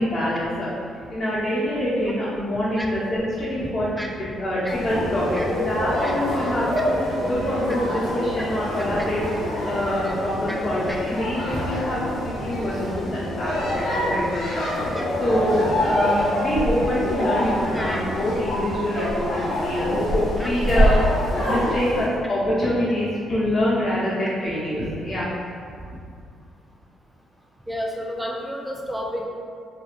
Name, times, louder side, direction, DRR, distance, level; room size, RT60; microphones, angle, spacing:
voice 1, 0.0-3.9 4.4-6.9 7.2-9.4 9.6-14.6 15.2-21.0 21.5-25.3, left 1 dB, 40° left, -9 dB, 0.9 m, -25 dB
sound 1, 4.7-22.0, equal, 85° left, 0.9 m, -25 dB
voice 2, 27.7-29.3, equal, 5° right, -1 dB, 0.3 m, -31 dB
2.6 x 2.4 x 2.3 m, 2.3 s
cardioid pair, 90°, 0 cm